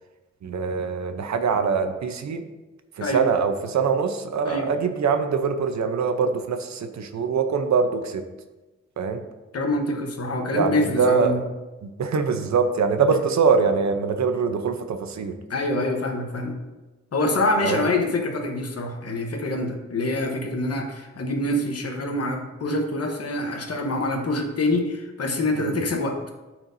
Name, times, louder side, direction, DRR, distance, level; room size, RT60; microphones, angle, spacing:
voice 1, 0.4-2.4 3.0-8.2 9.0-9.2 10.5-11.4 11.8-15.4 17.6-17.9 25.6-25.8, right 5 dB, 70° right, 7 dB, 0.7 m, -23 dB
voice 2, 9.5-11.4 13.1-13.2 15.5-16.6 17.1-26.2, left 2 dB, 55° left, 3 dB, 1.1 m, -25 dB
12.5 x 4.5 x 2.7 m, 1.1 s
wide cardioid pair, 175°, 29 cm